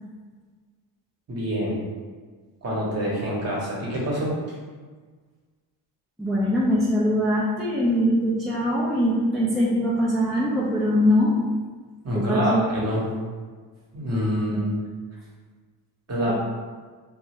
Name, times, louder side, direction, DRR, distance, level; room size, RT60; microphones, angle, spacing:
voice 1, 1.3-1.8 2.6-4.3 12.0-13.1 13.9-14.7 16.1-16.3, equal, 35° right, -4 dB, 1.0 m, -26 dB
voice 2, 6.2-11.3 12.1-12.6 14.5-14.6, equal, ahead, -8 dB, 0.5 m, -22 dB
2.7 x 2.3 x 3.1 m, 1.5 s
supercardioid pair, 80°, 47 cm